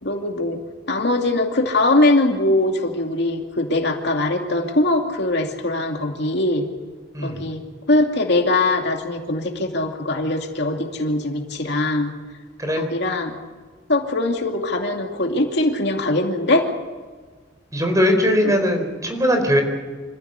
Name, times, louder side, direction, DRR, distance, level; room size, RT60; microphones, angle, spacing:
voice 1, 0.0-0.6 0.9-6.6 7.2-7.6 7.9-12.1 12.8-13.4 13.9-16.7 18.4-18.6, left 2 dB, 65° left, 3 dB, 2.5 m, -21 dB
voice 2, 17.7-19.6, equal, 20° right, 4 dB, 4.3 m, -19 dB
26.5 x 15.5 x 8.3 m, 1.5 s
head